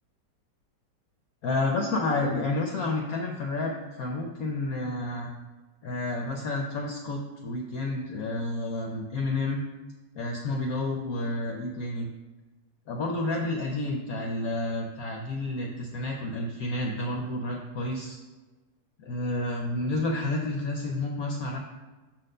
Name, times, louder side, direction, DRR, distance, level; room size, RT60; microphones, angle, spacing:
voice 1, 1.4-5.3 5.8-9.6 10.1-12.1 12.9-18.2 19.0-21.6, left 2 dB, 65° left, 1 dB, 1.0 m, -30 dB
6.4 x 4.2 x 6.5 m, 1.2 s
omnidirectional pair, 2.0 m